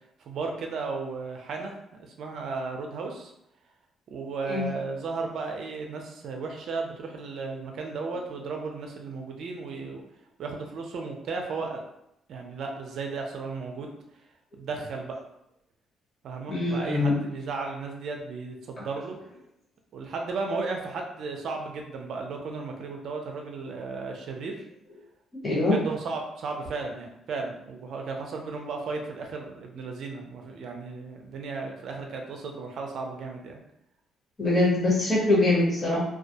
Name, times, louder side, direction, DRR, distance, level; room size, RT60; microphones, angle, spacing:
voice 1, 0.3-1.7 2.2-3.3 4.1-10.0 10.4-11.8 12.3-13.9 14.6-15.2 16.2-19.2 19.9-24.6 25.5-33.6, right 4 dB, 60° right, 2 dB, 0.5 m, -34 dB
voice 2, 16.5-17.2 18.8-18.9 25.4-25.8 34.4-36.0, left 2 dB, 20° left, -5 dB, 0.9 m, -23 dB
2.3 x 2.1 x 2.7 m, 0.80 s
cardioid pair, 135°, 0 cm